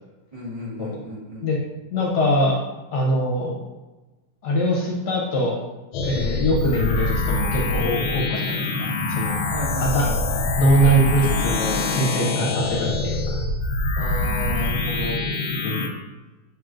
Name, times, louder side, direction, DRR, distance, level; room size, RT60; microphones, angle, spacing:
voice 1, 0.3-1.5 6.1-6.4 9.5-10.4 14.0-15.2, left 1 dB, 70° right, -7 dB, 0.3 m, -33 dB
voice 2, 1.9-2.6 2.9-3.6 4.4-5.6 6.0-9.4 9.8-10.1 10.6-13.4 15.6-15.9, equal, 65° left, -2 dB, 1.2 m, -22 dB
sound 1, 5.9-15.9, left 2 dB, 80° left, 1.4 m, -24 dB
6.8 x 3.1 x 2.4 m, 1.1 s
omnidirectional pair, 2.4 m